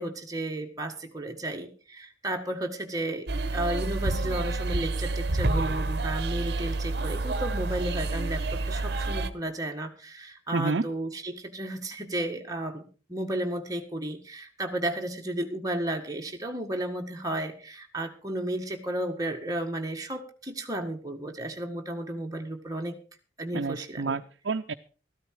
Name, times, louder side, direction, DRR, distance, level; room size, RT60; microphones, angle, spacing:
voice 1, 0.0-23.0 23.4-24.2, right 1 dB, 20° right, 3 dB, 1.8 m, -33 dB
sound 1, 3.3-9.3, right 2 dB, 60° right, 1.0 m, -29 dB
voice 2, 10.5-10.9 23.5-24.7, right 4 dB, 75° right, 6 dB, 0.6 m, -29 dB
14.0 x 13.0 x 4.7 m, 0.36 s
head